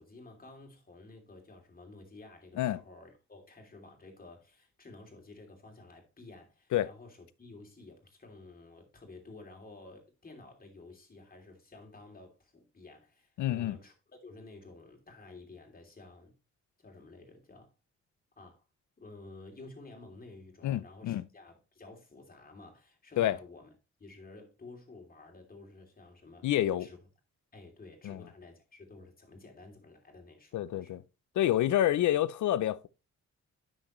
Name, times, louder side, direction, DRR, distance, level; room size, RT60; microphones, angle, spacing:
voice 1, 0.0-16.3 16.8-17.7 18.4-18.6 19.0-23.7 24.0-26.5 26.8-27.0 27.5-31.0, left 2 dB, 30° left, 2.9 m, -52 dB
voice 2, 13.4-13.8 20.6-21.2 23.2-23.4 26.4-26.9 28.0-28.2 30.5-31.0 31.4-32.9, left 12 dB, 80° left, 0.6 m, -28 dB
9.7 x 6.3 x 3.1 m
cardioid pair, 85°, 29 cm